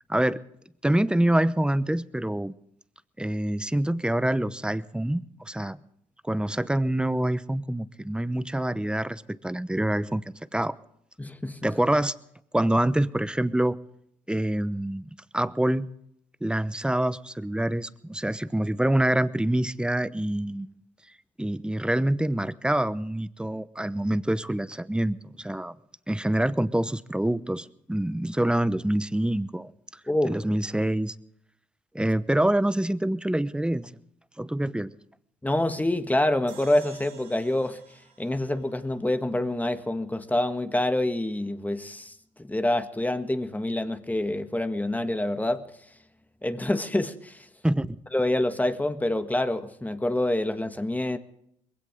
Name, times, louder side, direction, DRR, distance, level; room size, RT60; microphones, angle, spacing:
voice 1, 0.8-2.5 3.2-5.8 6.2-10.2 10.5-10.8 11.6-12.1 12.5-13.8 14.3-15.9 16.4-20.7 21.4-25.8 26.1-29.7 30.2-31.1 31.9-33.9 34.4-34.9 47.6-48.0, right 1 dB, 5° right, 0.9 m, -26 dB
voice 2, 11.2-11.6 30.1-30.4 35.4-37.8 38.2-42.1 42.4-45.6 46.4-47.4 48.1-51.2, left 1 dB, 10° left, 1.6 m, -26 dB
sound 1, 36.5-39.8, right 7 dB, 75° right, 3.7 m, -53 dB
21.5 x 16.5 x 3.7 m
supercardioid pair, 60°, 15 cm